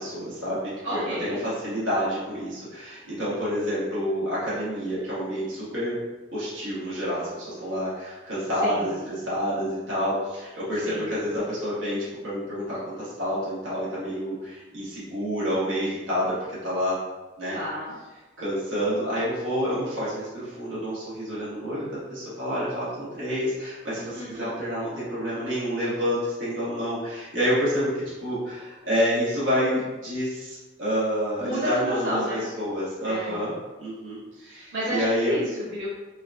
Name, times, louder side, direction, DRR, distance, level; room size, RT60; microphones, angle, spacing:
voice 1, 0.0-6.0 6.3-17.0 17.4-17.6 18.4-33.5 33.8-35.4, equal, 85° right, -10 dB, 1.4 m, -28 dB
voice 2, 0.8-1.4 8.6-9.1 10.7-11.1 17.5-18.0 24.1-24.5 31.4-32.5 33.0-33.5 34.5-35.9, equal, 60° right, -11 dB, 1.3 m, -31 dB
3.9 x 2.2 x 2.5 m, 1.2 s
head